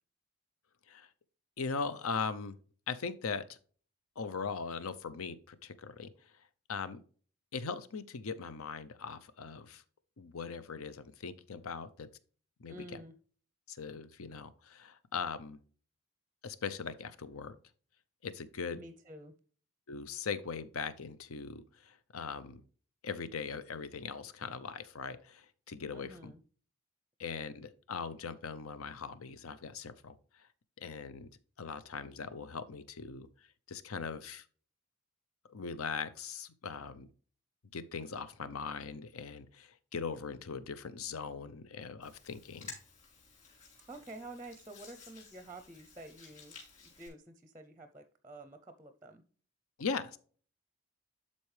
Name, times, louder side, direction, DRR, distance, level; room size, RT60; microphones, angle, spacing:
voice 1, 1.6-2.5 2.9-3.6 4.2-6.3 6.7-7.0 7.5-9.8 10.2-12.1 12.6-13.0 13.7-15.6 16.4-17.5 18.2-18.8 19.9-22.6 23.0-26.3 27.2-30.5 30.8-31.3 31.6-34.4 35.5-37.1 37.7-42.8 49.8-50.2, left 5 dB, 80° left, 13 dB, 0.7 m, -40 dB
voice 2, 12.7-13.1 18.7-19.3 25.9-26.4 43.9-46.6 46.8-49.2, right 2 dB, 15° right, 8 dB, 0.5 m, -49 dB
Hands, 42.0-47.1, left 5 dB, 35° left, 4.1 m, -54 dB
12.0 x 4.2 x 3.3 m, 0.44 s
head